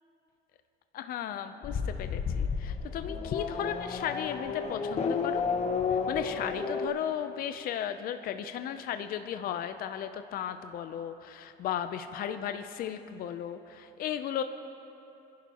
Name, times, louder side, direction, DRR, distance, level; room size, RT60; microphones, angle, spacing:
voice 1, 0.9-5.4 5.9-14.4, left 9 dB, 60° left, 9 dB, 0.5 m, -35 dB
Race car auto racing / Accelerating revving vroom, 1.6-6.9, left 5 dB, 40° left, 0.9 m, -32 dB
27.0 x 11.0 x 3.0 m, 2.9 s
cardioid pair, 110°, 17 cm